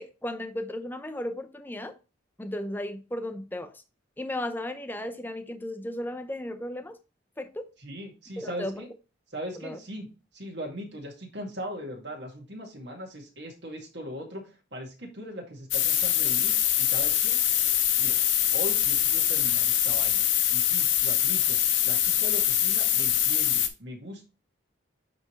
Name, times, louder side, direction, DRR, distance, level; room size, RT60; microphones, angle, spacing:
voice 1, 0.0-2.0 2.4-3.7 4.2-7.0 7.4-7.7 8.4-8.8 9.5-9.8, left 1 dB, 10° left, 0.5 m, -35 dB
voice 2, 7.8-8.9 9.3-10.1 10.3-17.4 18.0-18.2 18.5-21.6 21.8-24.2, equal, 60° right, 2.1 m, -39 dB
sound 1, 15.7-23.7, left 10 dB, 70° left, 0.8 m, -24 dB
9.6 x 3.4 x 3.2 m
head